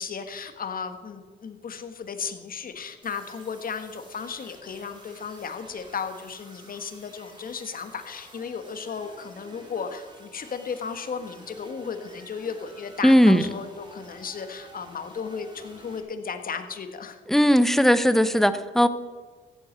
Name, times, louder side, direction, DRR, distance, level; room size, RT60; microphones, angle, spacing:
voice 1, 0.0-17.2, left 6 dB, 45° left, 8 dB, 1.5 m, -35 dB
sound 1, 3.0-16.0, right 1 dB, 25° right, 3.7 m, -50 dB
voice 2, 13.0-13.5 17.3-18.9, equal, ahead, 12 dB, 0.8 m, -18 dB
15.0 x 8.5 x 7.3 m, 1.4 s
cardioid pair, 90°, 20 cm